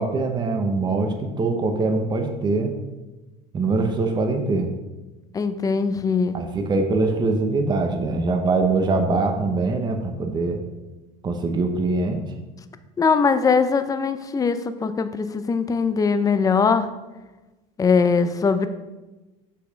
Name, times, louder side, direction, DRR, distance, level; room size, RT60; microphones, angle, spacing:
voice 1, 0.0-2.7 3.5-4.7 6.3-10.6 11.2-12.2, right 3 dB, 25° right, 5 dB, 0.9 m, -23 dB
voice 2, 5.3-6.4 13.0-16.9 17.8-18.7, left 5 dB, 20° left, 10 dB, 0.6 m, -21 dB
6.5 x 5.6 x 5.1 m, 1.1 s
supercardioid pair, 115°, 17 cm